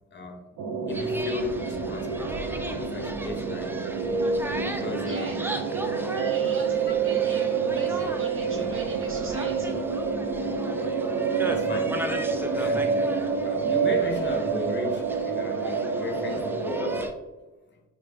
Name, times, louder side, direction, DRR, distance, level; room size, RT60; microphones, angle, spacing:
sound 1, 0.6-17.1, right 5 dB, 70° right, 0.5 m, -28 dB
voice 1, 0.8-2.3 2.8-3.7 4.6-5.4 11.4-12.0 12.5-13.0 13.4-17.2, left 3 dB, 35° left, 4 dB, 0.7 m, -35 dB
sound 2, 0.9-17.1, right 1 dB, 10° right, 0.3 m, -38 dB
voice 2, 5.0-5.4 5.9-9.8, right 2 dB, 45° right, 1 dB, 1.1 m, -38 dB
4.2 x 2.2 x 3.4 m, 1.1 s
cardioid pair, 90°, 30 cm